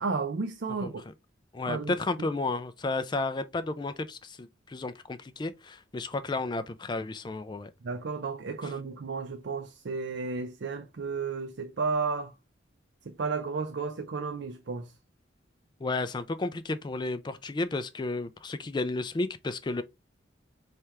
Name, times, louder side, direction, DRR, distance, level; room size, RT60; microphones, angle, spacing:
voice 1, 0.0-1.0 1.7-1.9 7.8-12.3 13.0-14.9, right 4 dB, 60° right, 0.5 m, -33 dB
voice 2, 1.5-7.7 8.6-8.7 15.8-19.8, left 2 dB, 25° left, 0.3 m, -32 dB
4.3 x 3.3 x 3.5 m
head